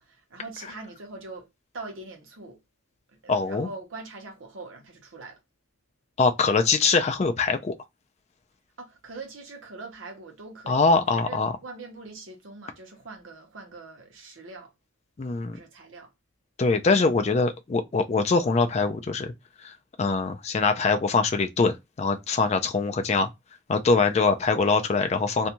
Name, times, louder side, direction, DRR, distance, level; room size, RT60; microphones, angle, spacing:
voice 1, 0.0-1.5 1.7-2.6 3.2-5.4 8.8-10.9 11.1-14.7 15.5-16.1, right 3 dB, 80° right, 0.9 m, -42 dB
voice 2, 3.3-3.7 6.2-7.7 10.7-11.5 15.2-15.6 16.6-19.3 19.6-23.3 23.7-25.5, left 4 dB, 35° left, 0.3 m, -23 dB
2.6 x 2.2 x 2.8 m
head